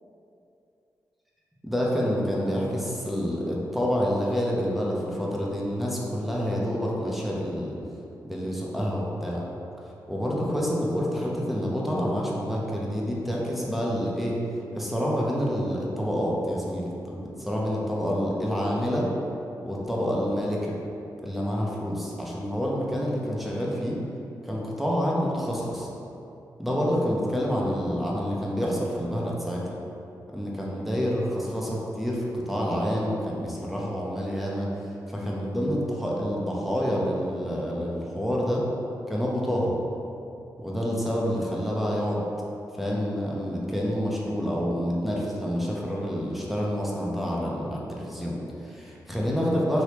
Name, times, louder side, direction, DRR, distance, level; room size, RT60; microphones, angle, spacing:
voice 1, 1.6-7.7 8.2-9.4 10.1-14.4 14.7-19.1 19.6-20.7 21.2-24.0 24.4-25.9 26.6-29.6 30.3-34.7 35.1-38.7 39.1-39.7 40.6-42.2 42.8-49.8, equal, ahead, -5 dB, 0.7 m, -28 dB
3.3 x 2.9 x 2.9 m, 2.8 s
cardioid pair, 55°, 8 cm